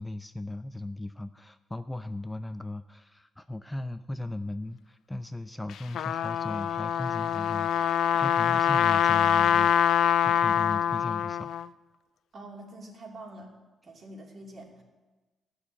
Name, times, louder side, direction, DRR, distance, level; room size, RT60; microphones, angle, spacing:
voice 1, 0.0-11.5, left 1 dB, 10° left, 10 dB, 0.5 m, -37 dB
Trumpet, 5.7-11.7, left 9 dB, 80° left, 0.4 m, -24 dB
voice 2, 12.3-13.5 13.8-14.8, right 1 dB, 50° right, 0 dB, 2.9 m, -45 dB
13.5 x 6.5 x 8.5 m, 1.2 s
cardioid pair, 80°, 0 cm